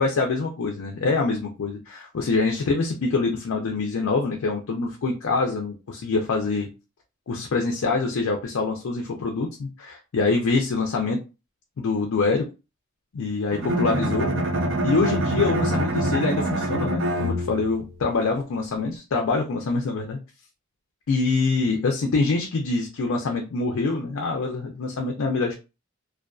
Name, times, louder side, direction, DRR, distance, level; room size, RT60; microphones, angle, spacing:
voice 1, 0.0-6.7 7.3-11.2 11.8-12.4 13.1-14.3 14.8-20.2 21.1-25.5, left 3 dB, 70° left, 2 dB, 0.4 m, -25 dB
Bowed string instrument, 13.5-17.8, right 1 dB, 55° right, 0.4 m, -25 dB
2.4 x 2.2 x 2.3 m, 0.30 s
head